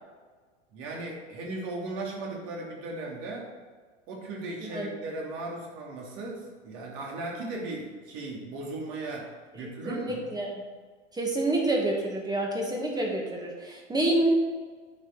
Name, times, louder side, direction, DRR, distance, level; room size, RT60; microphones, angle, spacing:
voice 1, 0.7-3.5 4.1-10.3, right 2 dB, 45° right, -1 dB, 2.8 m, -37 dB
voice 2, 9.9-10.5 11.1-14.3, right 1 dB, 10° right, -1 dB, 1.9 m, -28 dB
9.6 x 5.4 x 5.0 m, 1.5 s
hypercardioid pair, 100°, 37 cm